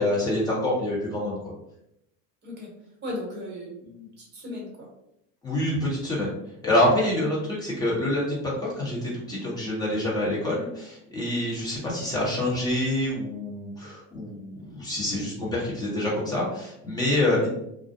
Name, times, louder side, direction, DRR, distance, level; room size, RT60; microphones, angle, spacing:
voice 1, 0.0-1.4 5.4-6.3 6.6-17.5, left 1 dB, 10° left, -6 dB, 1.1 m, -26 dB
voice 2, 2.4-2.7 3.0-4.9, left 1 dB, 25° right, -2 dB, 1.1 m, -37 dB
2.4 x 2.1 x 2.7 m, 0.80 s
supercardioid pair, 120°, 39 cm